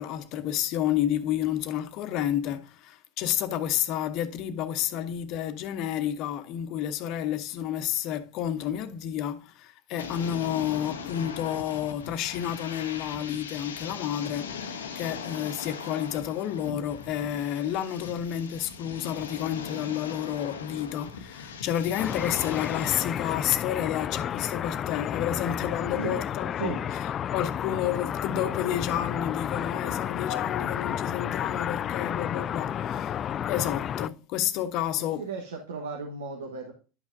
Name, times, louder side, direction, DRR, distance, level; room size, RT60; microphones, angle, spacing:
voice 1, 0.0-33.1 33.5-35.2, left 10 dB, 55° left, 1.0 m, -30 dB
sound 1, 10.0-23.1, left 6 dB, 90° left, 0.8 m, -40 dB
sound 2, 22.0-34.1, left 9 dB, 40° left, 0.3 m, -31 dB
voice 2, 35.0-36.7, right 4 dB, 90° right, 1.2 m, -35 dB
10.5 x 5.9 x 2.6 m
hypercardioid pair, 85°, 0 cm